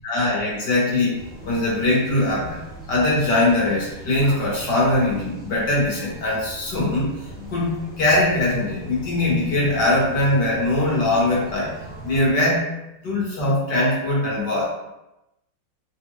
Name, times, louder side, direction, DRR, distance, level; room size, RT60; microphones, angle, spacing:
voice 1, 0.0-2.6 2.9-7.1 7.5-11.7 12.0-12.7 13.0-14.7, left 2 dB, 60° left, -5 dB, 1.5 m, -21 dB
sound 1, 1.1-12.3, right 1 dB, 10° left, 0.5 m, -41 dB
3.5 x 2.4 x 3.1 m, 0.92 s
omnidirectional pair, 2.3 m